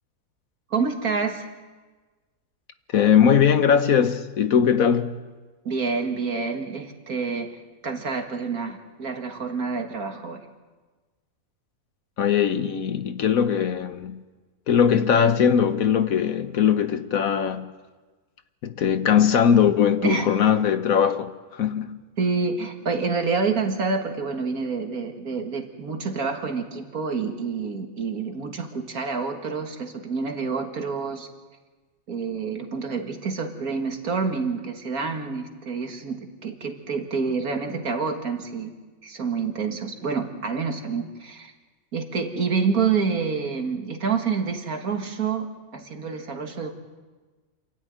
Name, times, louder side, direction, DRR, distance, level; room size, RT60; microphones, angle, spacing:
voice 1, 0.7-1.5 5.7-7.6 7.8-10.5 20.0-20.3 22.2-31.3 32.1-38.7 39.0-41.5 41.9-45.5 45.7-46.7, right 5 dB, 65° right, 2.3 m, -28 dB
voice 2, 2.9-5.2 12.2-14.2 14.7-17.7 18.6-22.0, left 8 dB, 65° left, 1.3 m, -20 dB
27.5 x 12.5 x 9.3 m
omnidirectional pair, 1.7 m